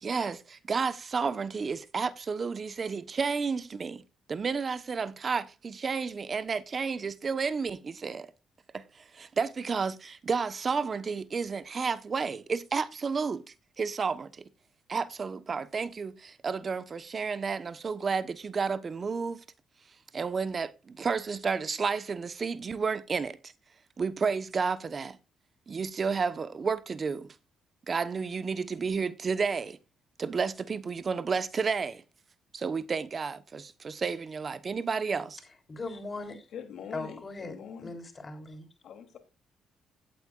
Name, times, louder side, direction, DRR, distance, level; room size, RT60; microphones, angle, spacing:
voice 1, 0.0-4.0 4.3-8.3 8.7-14.5 14.9-19.4 20.1-23.5 24.0-25.2 25.7-27.3 27.9-29.8 30.2-32.0 32.5-35.4, right 5 dB, 40° right, 1.0 m, -31 dB
voice 2, 35.7-36.5 36.9-38.7, left 3 dB, 30° left, 3.7 m, -39 dB
voice 3, 36.5-37.9 38.8-39.2, left 7 dB, 70° left, 3.0 m, -43 dB
16.5 x 8.5 x 2.5 m
cardioid pair, 90°, 0 cm